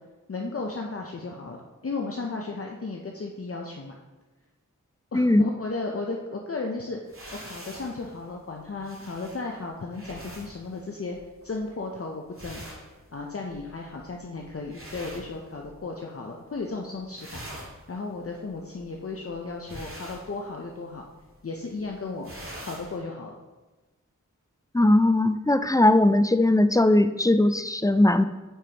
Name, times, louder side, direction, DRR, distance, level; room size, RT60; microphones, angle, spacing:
voice 1, 0.3-3.9 5.1-7.0 7.4-11.2 11.4-12.6 13.1-21.1 21.4-22.3 22.6-23.4, left 3 dB, 45° left, 1 dB, 0.7 m, -35 dB
voice 2, 5.1-5.4 24.7-28.2, left 1 dB, 10° left, 10 dB, 0.3 m, -19 dB
sound 1, 7.1-16.0 16.3-16.7 17.0-23.0, right 1 dB, 45° right, 1.9 m, -45 dB
9.0 x 4.8 x 2.9 m, 1.2 s
cardioid pair, 40°, 32 cm